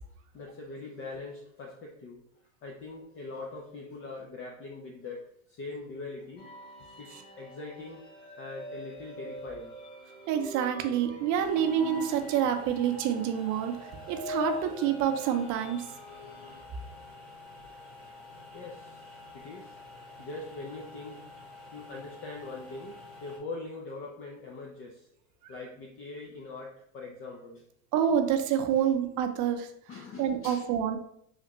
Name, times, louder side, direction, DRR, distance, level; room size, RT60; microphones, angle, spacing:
voice 1, 0.3-2.2 2.6-6.5 7.0-8.0 8.4-9.8 18.5-19.9 20.2-21.3 21.7-25.1 25.5-27.6 29.9-30.7, left 3 dB, 35° left, -1 dB, 0.5 m, -42 dB
sound 1, 6.4-16.6, left 1 dB, 75° left, 1.2 m, -42 dB
voice 2, 10.3-13.8 14.1-15.9 27.9-29.7 30.2-31.0, right 9 dB, 45° right, 6 dB, 0.6 m, -27 dB
sound 2, 11.3-23.4, left 3 dB, ahead, 1.1 m, -49 dB
3.3 x 2.4 x 3.0 m, 0.72 s
hypercardioid pair, 90°, 40 cm